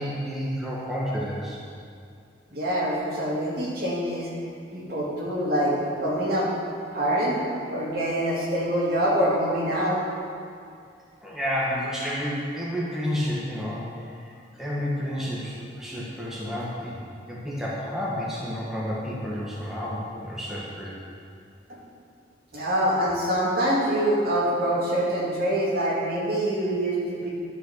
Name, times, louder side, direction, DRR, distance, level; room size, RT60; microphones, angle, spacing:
voice 1, 0.0-1.6 11.2-13.8 14.2-14.3 14.6-17.0 17.3-20.9, equal, ahead, -7 dB, 1.3 m, -30 dB
voice 2, 2.5-4.3 4.7-6.5 6.9-7.4 7.7-10.0 22.5-27.3, right 1 dB, 55° right, -6 dB, 2.5 m, -25 dB
11.0 x 5.7 x 6.4 m, 2.4 s
head